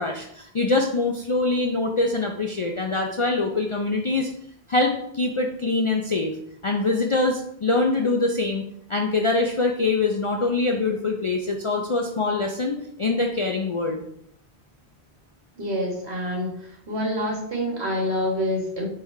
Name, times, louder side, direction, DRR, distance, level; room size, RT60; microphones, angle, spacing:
voice 1, 0.0-4.3 4.7-6.3 6.6-14.0, left 3 dB, 55° left, 2 dB, 0.3 m, -24 dB
voice 2, 15.6-16.5 16.9-18.9, equal, 80° right, -2 dB, 1.6 m, -26 dB
3.3 x 3.2 x 4.8 m, 0.71 s
omnidirectional pair, 1.1 m